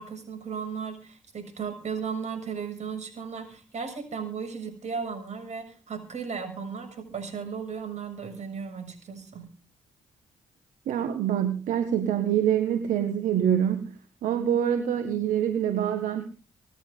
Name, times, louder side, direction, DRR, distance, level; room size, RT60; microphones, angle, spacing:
voice 1, 0.0-9.5, right 6 dB, 60° right, 7 dB, 6.7 m, -35 dB
voice 2, 10.9-13.9 14.2-16.2, right 9 dB, 80° right, 8 dB, 1.5 m, -25 dB
26.0 x 11.0 x 3.8 m, 0.36 s
supercardioid pair, 50°, 13 cm